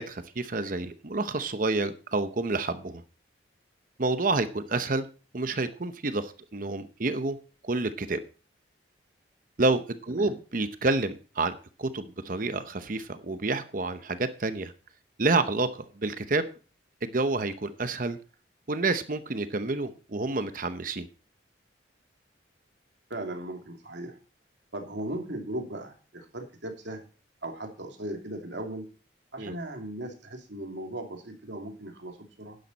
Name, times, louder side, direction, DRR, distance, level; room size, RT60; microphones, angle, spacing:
voice 1, 0.0-3.0 4.0-5.1 5.3-7.4 7.6-8.2 9.6-14.7 15.2-16.5 17.0-18.2 18.7-21.1 29.4-29.6, right 3 dB, 45° right, 11 dB, 0.8 m, -29 dB
voice 2, 23.1-24.2 24.7-27.0 27.4-28.9 29.3-32.6, right 1 dB, 70° right, 3 dB, 2.7 m, -37 dB
11.5 x 10.5 x 4.1 m, 0.36 s
head